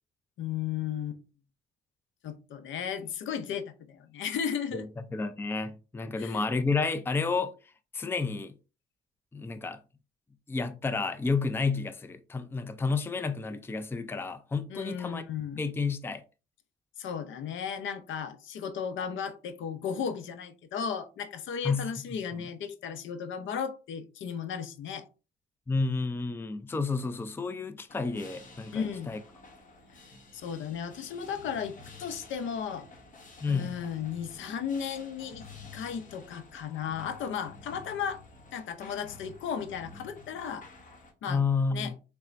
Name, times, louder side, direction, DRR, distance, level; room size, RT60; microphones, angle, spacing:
voice 1, 0.4-1.2 2.2-4.9 6.2-6.4 14.7-15.6 17.0-25.0 28.7-29.1 30.3-32.9 33.5-35.5 35.7-38.2 38.5-40.7 41.2-41.4 41.7-41.9, left 7 dB, 75° left, 0.7 m, -35 dB
voice 2, 4.7-7.5 7.9-8.5 9.3-9.8 10.5-16.2 21.6-21.9 25.7-29.2 33.4-33.8 41.3-41.9, left 4 dB, 10° left, 0.4 m, -31 dB
sound 1, 27.9-41.1, left 3 dB, 40° left, 1.1 m, -51 dB
4.1 x 3.4 x 2.5 m
cardioid pair, 90°, 20 cm